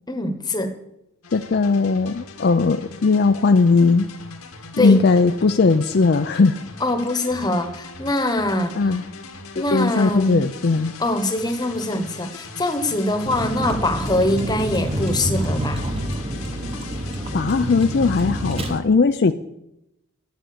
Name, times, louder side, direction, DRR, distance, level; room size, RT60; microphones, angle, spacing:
voice 1, 0.1-0.7 4.8-5.0 6.8-8.8 9.5-10.4 11.0-15.8, left 1 dB, 20° left, 7 dB, 1.1 m, -23 dB
sound 1, 1.2-18.8, left 4 dB, 85° left, 1.9 m, -40 dB
voice 2, 1.3-4.1 4.8-6.6 8.8-9.0 9.7-10.9 17.3-19.3, left 4 dB, 50° left, 8 dB, 0.4 m, -18 dB
Vehicle, 13.3-18.7, right 1 dB, 25° right, 1.0 m, -27 dB
11.5 x 7.7 x 8.5 m, 0.86 s
head